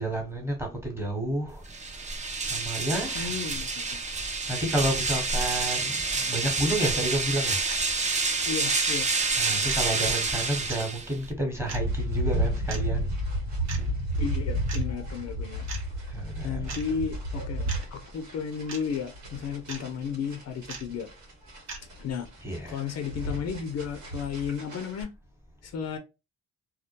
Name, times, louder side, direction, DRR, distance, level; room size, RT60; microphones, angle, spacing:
voice 1, 0.0-1.6 2.0-3.3 4.0-4.1 4.5-7.7 9.4-13.1 13.8-13.9 16.0-16.8 22.4-22.8, right 1 dB, 10° right, 1.0 m, -31 dB
sound 1, 1.6-11.3, right 4 dB, 25° right, 0.5 m, -28 dB
voice 2, 3.1-4.0 8.5-9.1 14.2-15.7 16.4-21.1 22.0-22.3 22.7-25.1 25.6-26.0, left 6 dB, 60° left, 0.5 m, -33 dB
sound 2, 5.7-5.8 6.7-6.8 7.7-7.9 8.7-8.8 9.7-9.8 10.7-10.8 11.7-11.9 12.7-12.8 13.7-13.8 14.7-14.8 15.7-15.8 16.7-16.8 17.7-17.8 18.7-18.8 19.7-19.8 20.7-20.8 21.7-21.8, right 5 dB, 60° right, 0.8 m, -38 dB
sound 3, 11.6-25.0, equal, 85° right, 1.3 m, -32 dB
2.3 x 2.1 x 2.8 m
cardioid pair, 90°, 30 cm